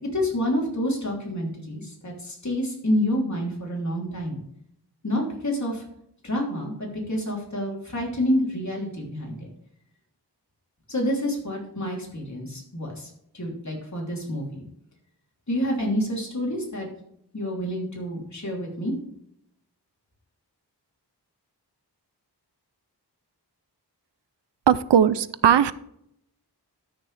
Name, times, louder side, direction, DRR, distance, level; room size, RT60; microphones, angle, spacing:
voice 1, 0.0-4.4 5.0-5.8 6.2-9.5 10.9-13.1 13.3-14.6 15.5-16.9 17.3-18.9, equal, 40° left, -2 dB, 3.2 m, -28 dB
voice 2, 24.7-25.7, right 9 dB, 80° right, 16 dB, 0.6 m, -18 dB
13.0 x 6.6 x 3.3 m, 0.74 s
wide cardioid pair, 75°, 41 cm